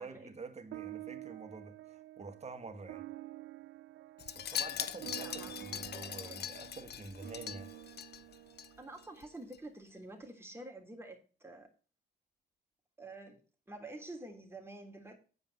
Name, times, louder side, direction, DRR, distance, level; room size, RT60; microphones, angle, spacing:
voice 1, 0.0-3.1 4.3-7.7, right 3 dB, 35° right, 1.8 m, -48 dB
sound 1, 0.7-9.4, right 16 dB, 75° right, 0.4 m, -49 dB
Wind chime, 4.2-8.7 9.0-9.3 9.5-9.6, left 10 dB, 55° left, 0.7 m, -41 dB
voice 2, 5.1-6.4 8.8-11.7 13.0-13.4 13.7-15.1, right 2 dB, 10° right, 3.3 m, -49 dB
9.6 x 5.2 x 6.8 m
cardioid pair, 90°, 20 cm